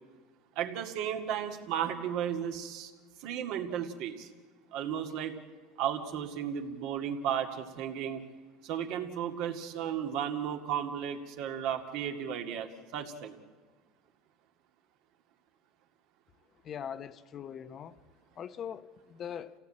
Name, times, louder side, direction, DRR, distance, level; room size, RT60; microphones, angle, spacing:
voice 1, 0.6-2.9 3.2-4.3 4.7-5.4 5.8-8.2 8.6-13.4, right 9 dB, 65° right, 4 dB, 2.1 m, -34 dB
voice 2, 16.6-18.0 18.4-19.5, left 8 dB, 40° left, 13 dB, 0.8 m, -41 dB
28.0 x 16.5 x 8.7 m, 1.5 s
supercardioid pair, 115°, 0 cm